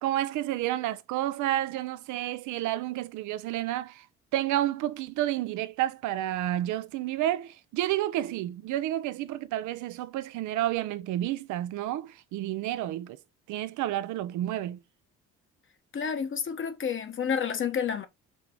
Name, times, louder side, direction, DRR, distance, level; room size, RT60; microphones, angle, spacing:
voice 1, 0.0-4.0 4.3-13.2 13.5-14.8, right 13 dB, 70° right, 0.6 m, -30 dB
voice 2, 15.9-18.1, left 7 dB, 40° left, 1.1 m, -30 dB
5.5 x 3.3 x 2.9 m
supercardioid pair, 80°, 31 cm